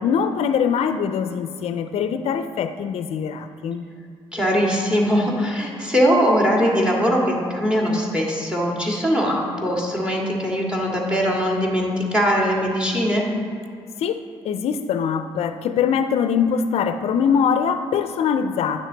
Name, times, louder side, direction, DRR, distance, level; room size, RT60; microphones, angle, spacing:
voice 1, 0.0-3.9 14.0-18.9, left 7 dB, 70° left, 9 dB, 0.4 m, -23 dB
voice 2, 4.3-13.2, equal, 10° right, -2 dB, 1.9 m, -21 dB
9.8 x 6.3 x 4.0 m, 2.4 s
cardioid pair, 85°, 11 cm